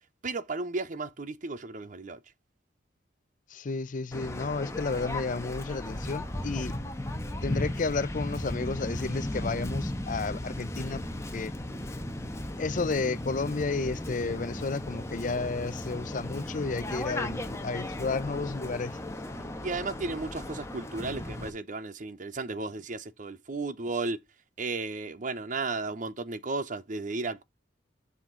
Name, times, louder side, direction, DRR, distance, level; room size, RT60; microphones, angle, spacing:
voice 1, 0.2-2.2 19.6-24.2 24.6-27.4, right 3 dB, 45° right, 0.7 m, -34 dB
voice 2, 3.5-6.8 7.4-11.5 12.6-19.0, left 4 dB, 45° left, 0.5 m, -32 dB
Waves surf, 4.1-21.5, left 1 dB, 15° left, 1.0 m, -36 dB
7.3 x 5.8 x 3.8 m
head